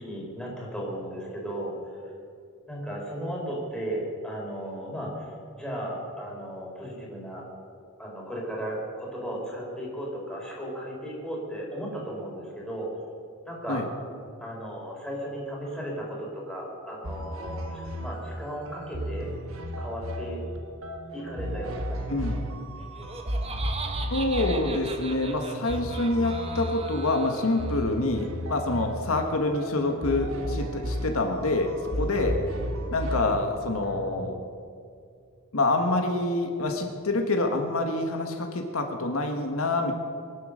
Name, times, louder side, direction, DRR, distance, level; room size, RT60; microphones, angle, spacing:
voice 1, 0.0-2.1 2.7-7.4 8.0-12.9 13.4-13.8 14.4-19.3 19.8-20.4 21.1-22.4 32.1-32.3, equal, 5° left, -4 dB, 4.3 m, -35 dB
sound 1, 17.0-34.3, equal, 65° right, 1.4 m, -34 dB
voice 2, 22.1-22.4 24.1-31.7 32.0-32.4 32.9-34.4 35.5-39.9, left 2 dB, 75° left, 4 dB, 1.5 m, -26 dB
Laughter, 22.8-28.0, right 4 dB, 30° right, 1.3 m, -39 dB
24.0 x 8.0 x 6.5 m, 2.4 s
head